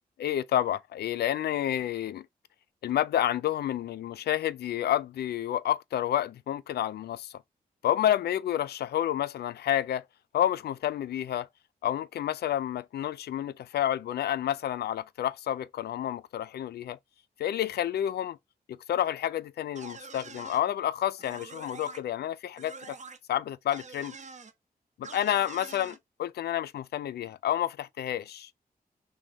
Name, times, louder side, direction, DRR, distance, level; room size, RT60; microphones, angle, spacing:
voice 1, 0.2-2.3 2.8-7.4 7.8-10.0 10.3-11.5 11.8-17.0 17.4-18.4 18.7-23.0 23.3-24.2 25.0-28.5, left 11 dB, 85° left, 0.4 m, -29 dB
sound 1, 19.8-20.6 21.2-22.0 22.6-23.2 23.7-24.5 25.0-26.0, right 4 dB, 45° right, 0.8 m, -45 dB
6.2 x 2.1 x 4.0 m
cardioid pair, 75°, 16 cm